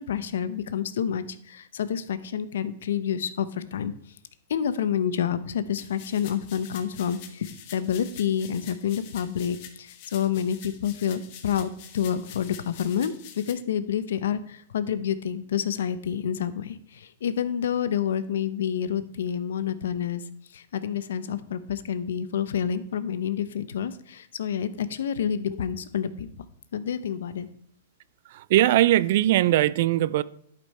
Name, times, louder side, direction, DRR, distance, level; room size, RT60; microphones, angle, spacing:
voice 1, 0.0-3.9 4.5-20.2 20.5-26.5 26.7-27.5, left 8 dB, 80° left, 14 dB, 0.7 m, -28 dB
sound 1, 5.8-13.5, left 9 dB, 45° left, 1.1 m, -46 dB
voice 2, 28.3-30.2, right 14 dB, 55° right, 20 dB, 0.4 m, -20 dB
11.5 x 5.3 x 4.2 m, 0.66 s
hypercardioid pair, 155°, 0 cm